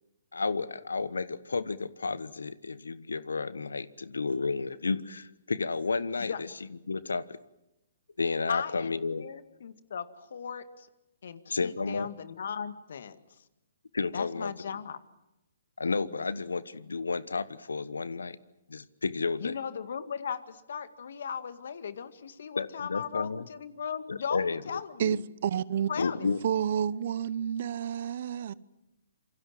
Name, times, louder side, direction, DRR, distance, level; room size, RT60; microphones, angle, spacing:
voice 1, 0.3-6.3 6.9-7.4 8.2-9.2 11.5-12.1 13.9-14.5 15.8-18.4 18.7-19.6 22.5-23.4 24.1-25.2 26.0-26.4, left 4 dB, 85° left, 1.2 m, -32 dB
voice 2, 8.5-10.9 11.2-13.2 14.1-15.0 19.4-25.1 25.9-26.3, left 7 dB, 65° left, 2.1 m, -37 dB
voice 3, 25.0-25.9 26.4-28.5, right 9 dB, 55° right, 0.9 m, -30 dB
27.5 x 24.0 x 7.7 m
hypercardioid pair, 135°, 0 cm